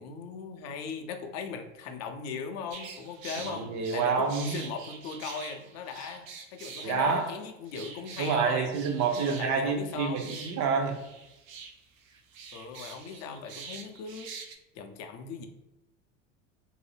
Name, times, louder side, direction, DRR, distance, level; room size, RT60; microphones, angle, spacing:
voice 1, 0.0-6.2 6.5-8.7 9.2-10.3 12.5-14.3 14.7-15.5, left 5 dB, 45° left, 6 dB, 0.5 m, -38 dB
sound 1, 2.7-14.5, right 5 dB, 85° right, 0.5 m, -45 dB
voice 2, 3.4-4.5 6.8-7.2 8.2-11.0, right 5 dB, 45° right, 4 dB, 0.7 m, -28 dB
2.6 x 2.0 x 3.2 m, 0.96 s
hypercardioid pair, 85°, 39 cm